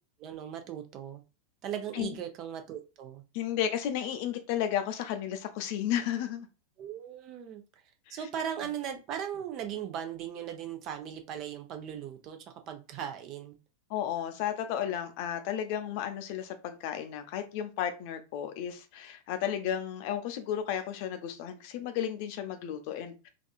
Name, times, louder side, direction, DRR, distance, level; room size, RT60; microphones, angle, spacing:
voice 1, 0.2-1.2 1.6-3.2 6.8-7.6 8.1-13.6, right 9 dB, 35° right, 0.6 m, -38 dB
voice 2, 3.3-6.5 8.1-8.2 13.9-23.3, left 10 dB, 45° left, 0.5 m, -33 dB
3.6 x 2.3 x 2.3 m
figure-of-eight pair, 90°, 0 cm